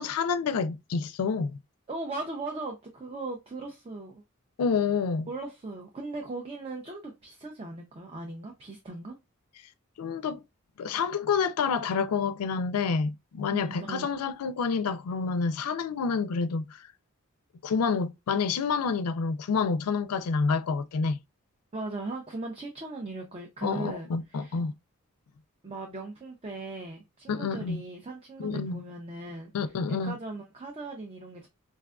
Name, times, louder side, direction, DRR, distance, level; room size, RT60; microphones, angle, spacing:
voice 1, 0.0-1.5 4.6-5.3 10.0-10.4 10.8-16.9 17.6-21.2 23.6-24.7 27.3-27.8 28.4-28.8 29.5-30.2, left 5 dB, 85° left, 0.4 m, -28 dB
voice 2, 1.9-4.2 5.3-9.2 13.5-14.1 21.7-24.6 25.6-29.5 30.0-31.5, right 2 dB, 25° right, 0.5 m, -38 dB
4.3 x 2.2 x 2.3 m
head